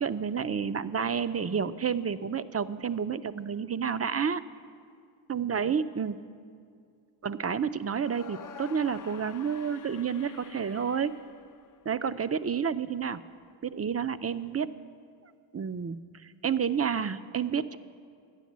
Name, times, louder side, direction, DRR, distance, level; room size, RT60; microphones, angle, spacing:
voice 1, 0.0-4.4 5.3-6.2 7.2-11.1 11.9-13.2 13.6-14.7 15.5-17.8, right 7 dB, 30° right, 13 dB, 0.5 m, -30 dB
sound 1, 8.0-12.1, left 7 dB, 40° left, 0.5 m, -48 dB
11.5 x 10.0 x 7.3 m, 2.3 s
cardioid pair, 40°, 50 cm